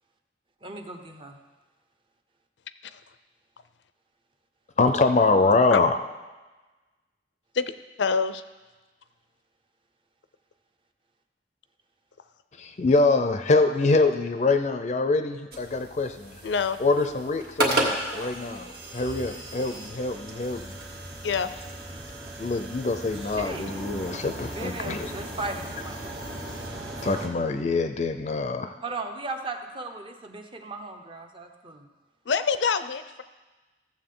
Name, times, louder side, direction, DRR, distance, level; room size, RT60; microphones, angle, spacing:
voice 1, 0.6-1.4 23.1-23.7 24.5-26.1 28.8-31.9, right 2 dB, 30° right, 5 dB, 0.7 m, -37 dB
voice 2, 4.8-5.9 12.6-16.4 16.8-20.8 22.4-25.1 27.0-28.7, left 3 dB, 40° left, 7 dB, 0.5 m, -24 dB
voice 3, 8.0-8.4 16.4-16.8 21.2-21.6 32.3-33.2, left 5 dB, 90° left, 12 dB, 0.5 m, -26 dB
sound 1, 15.5-27.3, right 1 dB, 60° right, 1.7 m, -34 dB
14.5 x 7.3 x 3.8 m, 1.2 s
head